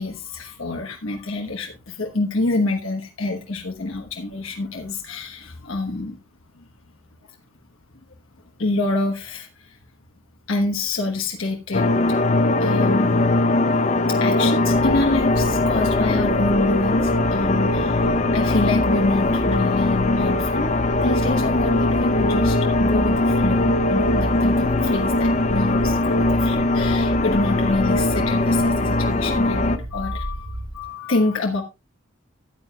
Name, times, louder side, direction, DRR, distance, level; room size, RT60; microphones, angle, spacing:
voice 1, 0.0-6.2 6.5-6.7 7.2-7.4 8.6-9.8 10.5-12.3 12.6-13.7 14.1-31.6, left 2 dB, 80° left, 2 dB, 1.2 m, -27 dB
sound 1, 11.7-29.8, left 2 dB, 35° left, 0.6 m, -20 dB
sound 2, 14.6-30.9, right 1 dB, 45° right, 2.5 m, -31 dB
14.0 x 9.2 x 2.3 m, 0.26 s
head